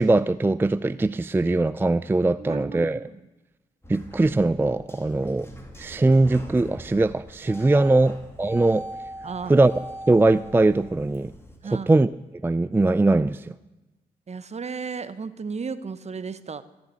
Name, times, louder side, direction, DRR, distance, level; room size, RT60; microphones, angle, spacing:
voice 1, 0.0-3.1 3.9-5.5 5.8-8.9 9.5-9.7 10.1-11.3 11.7-12.1 12.4-13.5, right 2 dB, 15° right, 15 dB, 0.4 m, -21 dB
voice 2, 2.4-3.2 7.8-8.1 9.2-9.5 11.6-11.9 14.3-16.6, right 5 dB, 45° right, 14 dB, 0.9 m, -34 dB
sound 1, 3.8-11.6, equal, 15° left, 2.7 m, -42 dB
14.0 x 7.4 x 8.9 m, 1.1 s
supercardioid pair, 55°, 16 cm